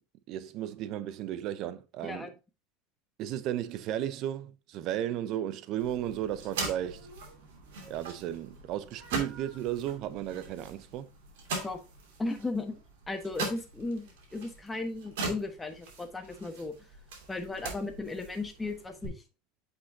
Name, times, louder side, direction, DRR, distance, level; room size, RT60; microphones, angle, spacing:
voice 1, 0.3-2.3 3.2-7.1 7.9-11.1, right 11 dB, 55° right, 0.7 m, -34 dB
sound 1, 5.8-19.1, right 3 dB, 75° right, 2.6 m, -41 dB
voice 2, 12.2-12.8 13.1-16.7 17.3-19.2, left 3 dB, 15° left, 1.3 m, -36 dB
8.2 x 5.3 x 2.8 m
hypercardioid pair, 95°, 0 cm